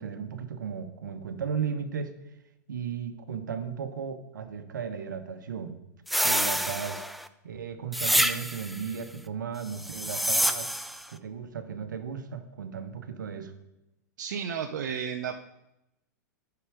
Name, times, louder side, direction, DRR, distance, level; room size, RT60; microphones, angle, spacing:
voice 1, 0.0-2.1 2.7-5.8 6.2-7.1 7.4-10.7 11.1-13.5, right 7 dB, 85° right, 8 dB, 1.2 m, -35 dB
sound 1, 6.1-7.3 7.9-8.8 9.8-11.0, equal, ahead, 0.4 m, -27 dB
voice 2, 14.2-15.4, right 7 dB, 70° right, 4 dB, 0.7 m, -32 dB
9.8 x 5.9 x 5.0 m, 0.90 s
hypercardioid pair, 120°, 10 cm